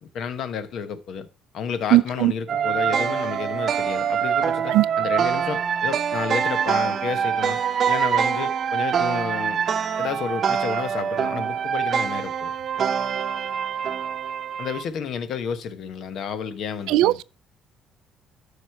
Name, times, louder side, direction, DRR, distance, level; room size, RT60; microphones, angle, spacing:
voice 1, 0.1-1.3 1.5-7.6 7.8-9.6 10.0-12.5 14.6-17.2, left 7 dB, 60° left, 1.0 m, -31 dB
voice 2, 1.9-2.3 4.7-4.8 16.9-17.2, right 17 dB, 90° right, 0.3 m, -18 dB
sound 1, 2.5-14.8, right 7 dB, 45° right, 0.8 m, -24 dB
12.5 x 5.0 x 4.5 m
cardioid pair, 125°, 0 cm